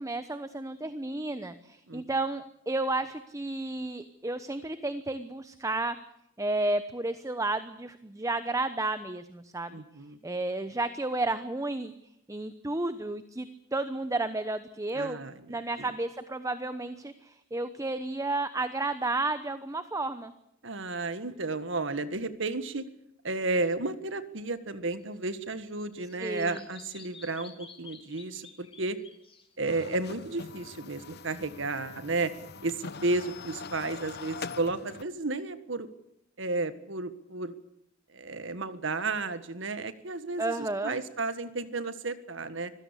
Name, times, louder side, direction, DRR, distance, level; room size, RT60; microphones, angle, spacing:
voice 1, 0.0-6.0 6.4-9.8 10.2-11.9 12.3-15.2 15.5-20.3 26.2-26.6 40.4-41.0, right 2 dB, 15° right, 12 dB, 0.9 m, -32 dB
voice 2, 9.7-10.2 14.9-15.9 20.6-22.9 23.2-29.0 29.6-32.3 32.6-35.9 36.4-37.5 38.1-42.7, right 3 dB, 70° right, 12 dB, 1.7 m, -33 dB
Bird vocalization bird call bird song, 25.0-30.9, left 5 dB, 30° left, 3.2 m, -53 dB
sound 1, 29.7-35.0, left 5 dB, 55° left, 1.0 m, -43 dB
25.5 x 16.5 x 8.3 m, 0.79 s
head